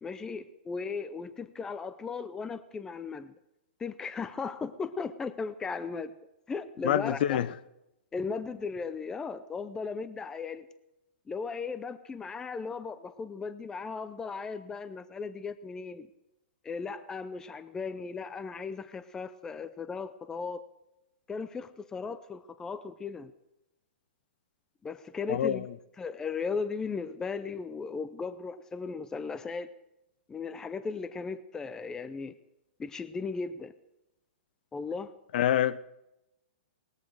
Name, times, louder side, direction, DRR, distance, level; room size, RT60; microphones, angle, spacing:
voice 1, 0.0-3.3 3.8-6.2 6.5-7.4 8.1-10.7 11.3-16.1 16.6-20.6 21.3-23.3 24.8-25.7 26.0-29.7 30.3-32.4 32.8-33.7 34.7-35.1, left 5 dB, 10° left, 0.5 m, -36 dB
voice 2, 6.8-7.5 25.3-25.7 35.3-35.8, left 11 dB, 55° left, 0.7 m, -26 dB
19.0 x 14.0 x 4.7 m
hypercardioid pair, 150°, 6 cm